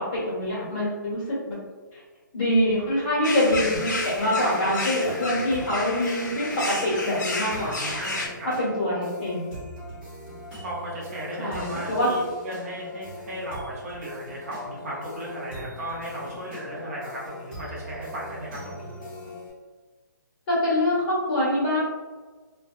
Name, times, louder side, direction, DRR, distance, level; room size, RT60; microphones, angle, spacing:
voice 1, 0.1-1.6 2.3-8.0 8.6-9.5 11.4-12.1 20.5-21.8, left 1 dB, 30° left, -8 dB, 1.3 m, -25 dB
sound 1, 3.2-8.3, left 2 dB, 60° left, 0.6 m, -31 dB
sound 2, 3.5-19.5, left 1 dB, 10° right, 1.0 m, -41 dB
voice 2, 8.0-8.5 10.6-19.0, right 1 dB, 45° right, -5 dB, 0.7 m, -35 dB
2.6 x 2.2 x 2.3 m, 1.4 s
hypercardioid pair, 155°, 11 cm